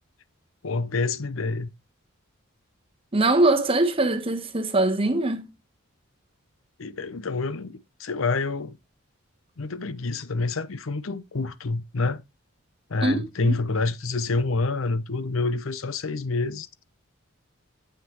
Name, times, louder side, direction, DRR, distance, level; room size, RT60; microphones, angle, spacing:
voice 1, 0.6-1.7 6.8-8.8 9.6-12.2 12.9-16.7, left 3 dB, 70° left, 0.7 m, -27 dB
voice 2, 3.1-5.5 13.0-13.6, right 2 dB, 25° right, 1.0 m, -22 dB
9.0 x 7.3 x 3.0 m
head